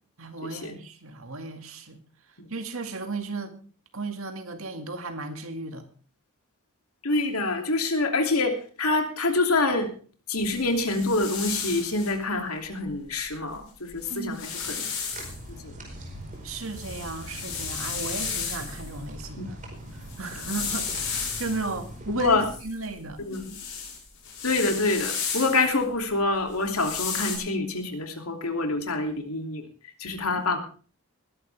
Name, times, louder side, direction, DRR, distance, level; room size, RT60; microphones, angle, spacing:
voice 1, 0.2-2.0 2.5-3.6 3.9-5.9 14.1-14.4 16.4-19.6 20.2-23.2, right 3 dB, 65° right, 7 dB, 2.3 m, -35 dB
voice 2, 7.0-9.9 10.3-14.9 15.6-15.7 19.4-19.5 22.2-22.5 23.3-23.5 24.4-29.6 30.0-30.6, left 2 dB, 80° left, 5 dB, 3.0 m, -26 dB
sound 1, 10.6-12.1 13.5-13.6 13.9-15.4 15.9-18.9 19.9-21.8 22.4-25.8 26.5-27.4, left 6 dB, 60° left, 7.0 m, -34 dB
sound 2, 15.1-22.5, equal, 35° right, 4.9 m, -42 dB
20.5 x 11.5 x 3.5 m, 0.39 s
head